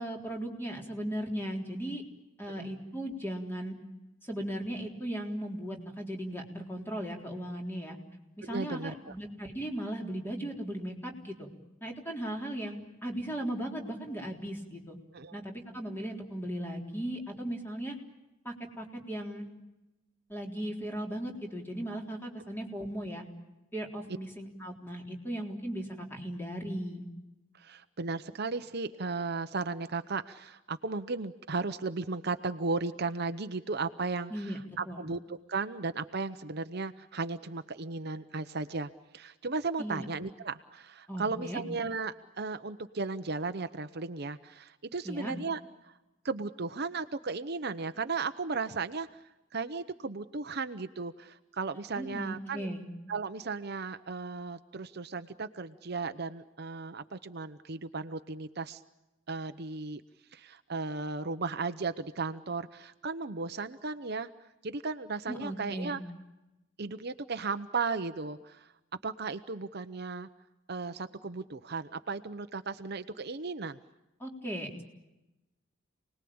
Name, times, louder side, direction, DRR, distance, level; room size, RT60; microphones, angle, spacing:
voice 1, 0.0-2.0 2.4-3.8 4.2-8.0 8.4-11.5 11.8-15.0 15.3-18.0 18.4-19.5 20.3-23.2 23.7-27.0 34.3-34.6 34.9-35.0 39.8-40.0 41.1-41.6 45.0-45.3 52.0-52.8 65.3-66.0 74.2-74.8, right 1 dB, 10° left, 1 dB, 3.8 m, -37 dB
voice 2, 8.4-9.2 15.1-15.4 27.6-45.9 46.2-49.1 49.5-52.7 53.1-58.8 59.3-60.0 60.3-64.3 64.6-66.0 66.8-68.7 69.0-70.3 70.7-73.8, right 4 dB, 55° right, 10 dB, 0.9 m, -35 dB
29.0 x 20.0 x 8.7 m, 0.99 s
head